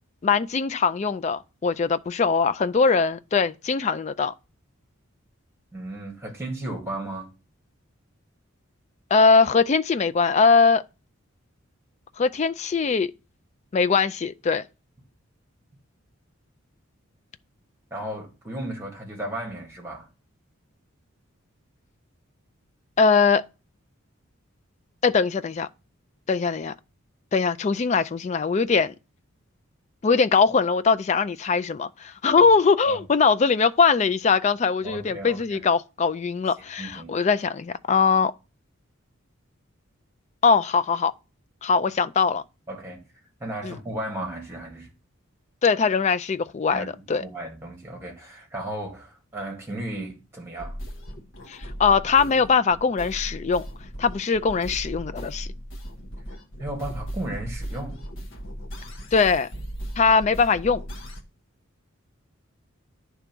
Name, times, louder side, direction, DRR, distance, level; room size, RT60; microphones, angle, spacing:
voice 1, 0.2-4.3 9.1-10.8 12.2-13.1 13.7-14.7 23.0-23.4 25.0-25.7 26.3-26.7 27.3-28.9 30.0-38.3 40.4-41.1 41.6-42.4 43.6-43.8 45.6-47.2 51.5-53.7 54.0-55.5 59.1-59.5 60.0-60.8, left 5 dB, 30° left, 0.3 m, -21 dB
voice 2, 5.7-7.3 17.9-20.1 32.8-33.0 34.8-35.6 36.6-37.1 42.7-43.0 43.4-44.9 46.7-50.8 56.6-58.0, right 1 dB, 10° right, 1.9 m, -35 dB
sound 1, 50.6-61.2, equal, 65° left, 1.2 m, -37 dB
10.0 x 3.5 x 5.9 m
head